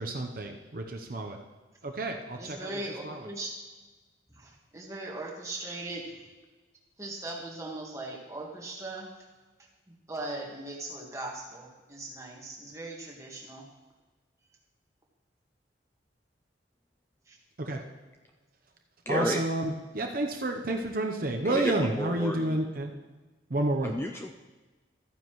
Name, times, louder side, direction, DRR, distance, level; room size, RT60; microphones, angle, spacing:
voice 1, 0.0-1.4 1.8-2.7 3.1-3.2 17.6-17.8 19.1-22.9 23.5-23.9, right 2 dB, 50° right, 3 dB, 0.8 m, -30 dB
voice 2, 2.4-3.5 4.3-6.2 7.0-9.1 9.9-13.7 17.3-17.4, right 2 dB, 15° right, -2 dB, 1.6 m, -39 dB
voice 3, 19.1-19.4 21.4-22.6 23.8-24.3, left 1 dB, 10° left, 3 dB, 0.4 m, -31 dB
13.5 x 9.4 x 3.1 m, 1.3 s
head